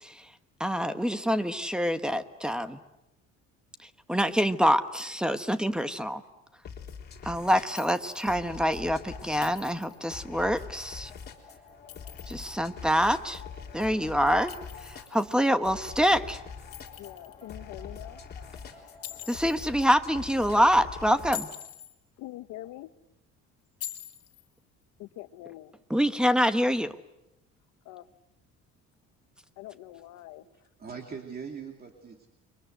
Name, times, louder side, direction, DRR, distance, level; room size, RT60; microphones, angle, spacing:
voice 1, 0.6-2.8 4.1-6.2 7.2-11.1 12.3-13.4 13.7-14.5 14.8-16.4 19.3-21.5 25.9-26.9, equal, 5° right, 10 dB, 1.2 m, -26 dB
sound 1, 6.6-21.4, left 6 dB, 35° left, 3.8 m, -45 dB
Chink clink, 7.8-8.4 9.4-10.1 11.7-12.6 14.5-15.4 16.7-17.5 19.0-19.7 21.2-21.9 23.8-24.5, left 11 dB, 50° left, 2.7 m, -43 dB
sound 2, 8.4-21.3, left 5 dB, 15° left, 4.4 m, -53 dB
voice 2, 17.0-18.2 22.2-22.9 25.0-25.7 27.8-28.1 29.6-30.4, left 15 dB, 80° left, 12 dB, 1.2 m, -44 dB
voice 3, 30.4-32.3, right 6 dB, 30° right, 3 dB, 2.8 m, -41 dB
30.0 x 23.5 x 8.0 m, 0.90 s
cardioid pair, 140°, 29 cm